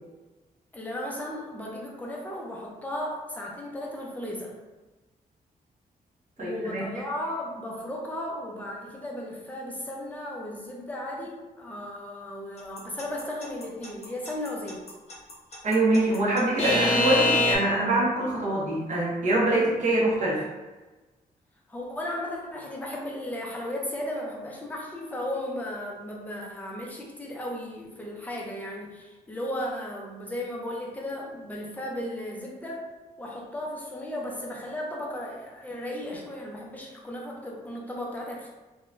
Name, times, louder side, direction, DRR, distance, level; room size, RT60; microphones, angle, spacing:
voice 1, 0.7-4.5 6.4-14.8 16.2-16.3 21.7-32.8 33.2-38.5, left 1 dB, 10° left, -2 dB, 0.5 m, -35 dB
voice 2, 6.4-6.8 15.6-20.5, right 1 dB, 50° right, -5 dB, 0.9 m, -24 dB
Alarm / Clock, 12.8-17.5, left 1 dB, 40° left, 0.8 m, -24 dB
3.7 x 2.2 x 2.5 m, 1.2 s
wide cardioid pair, 175°, 16 cm